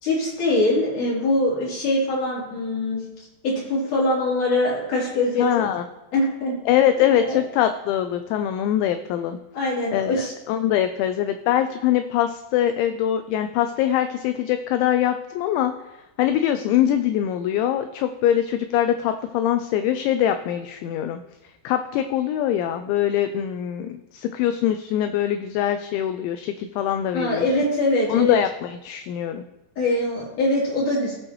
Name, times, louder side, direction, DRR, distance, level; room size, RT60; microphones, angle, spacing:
voice 1, 0.0-3.0 3.4-5.5 6.1-6.5 7.0-7.4 9.5-10.3 27.1-28.4 29.8-31.2, left 2 dB, 45° left, -7 dB, 4.4 m, -23 dB
voice 2, 5.4-5.8 6.7-9.4 9.9-15.7 16.2-21.2 21.6-27.4 28.1-29.4, left 11 dB, 85° left, 8 dB, 2.6 m, -23 dB
17.0 x 6.4 x 3.1 m, 1.0 s
omnidirectional pair, 5.8 m